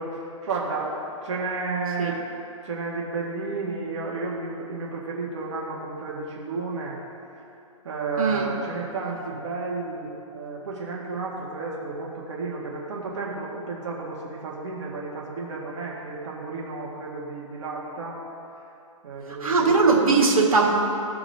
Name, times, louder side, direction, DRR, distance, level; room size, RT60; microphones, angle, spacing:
voice 1, 0.0-2.2 2.6-7.0 7.4-7.5 7.8-18.2 18.5-18.7 19.0-20.1, right 3 dB, 55° right, -3 dB, 1.8 m, -32 dB
voice 2, 19.4-20.7, right 4 dB, 85° right, -1 dB, 1.9 m, -19 dB
17.0 x 5.8 x 2.8 m, 2.6 s
hypercardioid pair, 140°, 18 cm